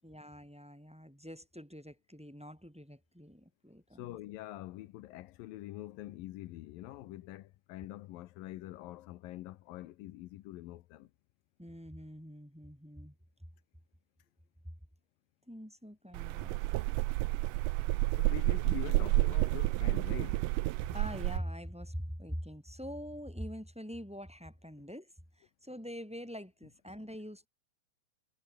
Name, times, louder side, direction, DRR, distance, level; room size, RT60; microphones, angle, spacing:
voice 1, 0.0-4.2 11.6-13.1 15.5-16.6 20.9-25.1 25.4-27.5, equal, ahead, 6.5 m, -44 dB
voice 2, 4.0-11.1 18.2-20.4, left 16 dB, 85° left, 2.6 m, -45 dB
sound 1, 16.1-21.4, right 20 dB, 80° right, 2.0 m, -30 dB
omnidirectional pair, 4.1 m